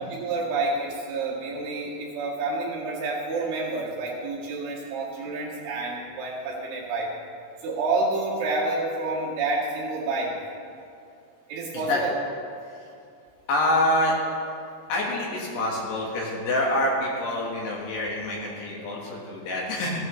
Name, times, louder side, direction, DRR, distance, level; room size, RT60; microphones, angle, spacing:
voice 1, 0.0-7.1 7.6-10.3 11.5-12.2, right 3 dB, 90° right, -8 dB, 4.7 m, -29 dB
voice 2, 13.5-14.1 14.9-20.0, left 1 dB, 70° left, -3 dB, 3.4 m, -26 dB
16.5 x 11.5 x 3.2 m, 2.4 s
omnidirectional pair, 5.4 m